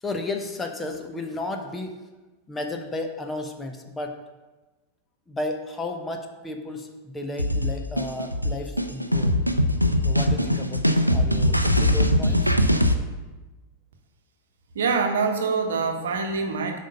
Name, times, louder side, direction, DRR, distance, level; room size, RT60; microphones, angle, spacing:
voice 1, 0.0-1.9 2.5-4.2 5.3-9.4 10.0-12.5, left 2 dB, 15° left, 4 dB, 1.0 m, -33 dB
sound 1, 7.4-12.9, left 1 dB, 90° right, 0.5 m, -21 dB
voice 2, 14.7-16.8, right 4 dB, 65° right, 4 dB, 1.0 m, -25 dB
7.6 x 5.3 x 5.5 m, 1.2 s
figure-of-eight pair, 90°, 0 cm